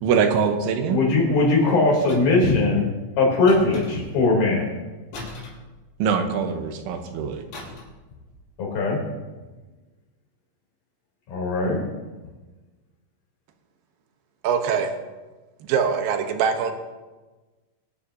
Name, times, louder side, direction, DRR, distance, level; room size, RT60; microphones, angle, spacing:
voice 1, 0.0-1.0 6.0-7.4, right 6 dB, 90° right, 5 dB, 3.4 m, -23 dB
voice 2, 0.9-2.9 3.2-4.7 8.6-9.0 11.3-11.8, left 3 dB, 55° left, -2 dB, 5.0 m, -20 dB
sound 1, 2.1-2.5 3.5-4.2 5.1-6.3 7.5-8.0 8.3-8.5, left 2 dB, 70° left, 6.1 m, -39 dB
voice 3, 14.4-14.9 15.7-16.7, right 6 dB, 70° right, 5 dB, 2.3 m, -22 dB
23.5 x 9.7 x 2.8 m, 1.2 s
omnidirectional pair, 5.3 m